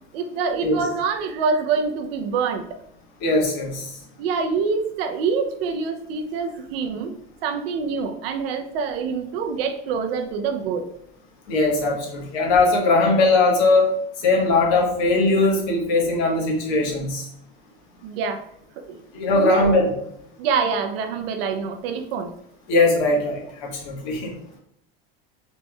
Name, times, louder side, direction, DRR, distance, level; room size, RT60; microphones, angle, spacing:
voice 1, 0.1-2.8 4.2-7.1 7.4-10.8 18.0-18.4 18.9-19.0 19.3-19.6 20.4-22.3, right 5 dB, 85° right, 6 dB, 0.6 m, -25 dB
voice 2, 3.2-3.9 11.5-13.9 14.2-17.2 19.1-19.9 22.7-24.3, left 2 dB, 70° left, 0 dB, 1.3 m, -20 dB
4.4 x 3.1 x 2.3 m, 0.74 s
supercardioid pair, 115°, 29 cm